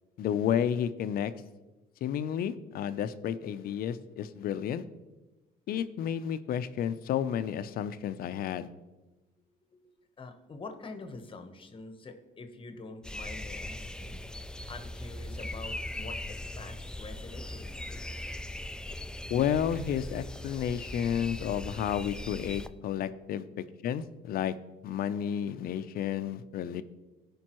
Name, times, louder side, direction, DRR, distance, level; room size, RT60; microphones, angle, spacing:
voice 1, 0.2-1.3 2.0-4.8 5.7-8.7 19.3-24.6 24.8-26.8, left 9 dB, 60° left, 12 dB, 0.5 m, -31 dB
voice 2, 9.7-14.2 14.7-18.0, left 3 dB, 30° left, 7 dB, 1.0 m, -46 dB
sound 1, 13.0-22.7, left 1 dB, 5° left, 0.3 m, -40 dB
15.5 x 5.2 x 3.0 m, 1.1 s
cardioid pair, 110°, 17 cm